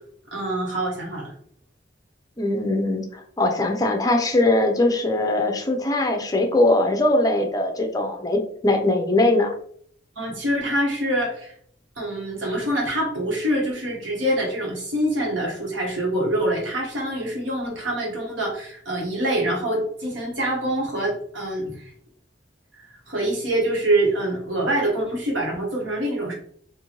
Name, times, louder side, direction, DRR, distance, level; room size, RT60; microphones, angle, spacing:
voice 1, 0.3-1.3 10.2-11.5 12.0-21.9 22.8-26.3, right 1 dB, 90° right, -1 dB, 1.4 m, -25 dB
voice 2, 2.4-9.5, left 2 dB, 20° left, 4 dB, 0.5 m, -21 dB
4.1 x 2.6 x 3.0 m, 0.62 s
head